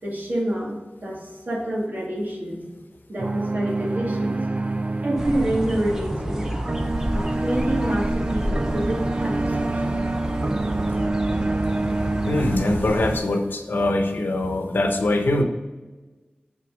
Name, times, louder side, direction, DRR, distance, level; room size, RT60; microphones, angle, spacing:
voice 1, 0.0-2.6 3.1-4.4 5.0-6.5 7.1-10.0, right 1 dB, 65° right, -3 dB, 2.0 m, -28 dB
sound 1, 3.2-12.6, right 2 dB, 40° right, 0.4 m, -27 dB
sound 2, 5.2-13.2, right 1 dB, 15° right, 0.8 m, -29 dB
voice 2, 12.2-15.4, left 1 dB, 85° left, 4 dB, 0.8 m, -22 dB
6.1 x 4.2 x 5.2 m, 1.2 s
wide cardioid pair, 50°, 3 cm